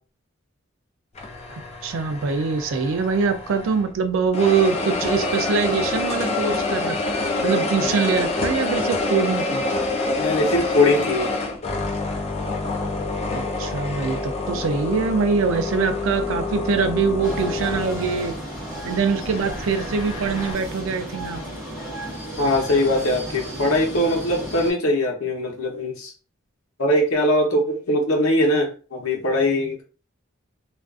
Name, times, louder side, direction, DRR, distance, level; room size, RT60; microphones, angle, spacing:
sound 1, 1.2-3.9 4.3-20.5, left 2 dB, 30° left, 0.3 m, -27 dB
voice 1, 1.8-7.0 7.4-9.6 13.3-18.4 18.8-21.4, right 5 dB, 65° right, 0.3 m, -23 dB
voice 2, 10.2-11.3 22.4-26.1 26.8-29.8, left 1 dB, 90° left, 0.8 m, -21 dB
sound 2, 17.2-24.7, right 1 dB, 5° right, 1.0 m, -34 dB
2.4 x 2.3 x 2.4 m
head